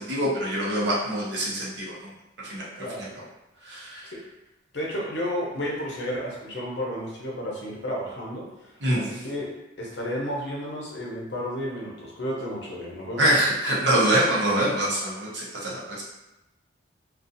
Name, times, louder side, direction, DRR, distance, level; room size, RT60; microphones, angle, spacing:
voice 1, 0.0-2.1 2.5-2.7 3.0-3.1 3.7-4.1 8.8-9.1 13.2-16.0, right 1 dB, 65° right, -4 dB, 0.7 m, -24 dB
voice 2, 2.8-3.1 4.0-4.2 4.7-9.5 9.8-13.3, equal, 60° left, -3 dB, 0.7 m, -32 dB
2.4 x 2.3 x 2.6 m, 0.96 s
head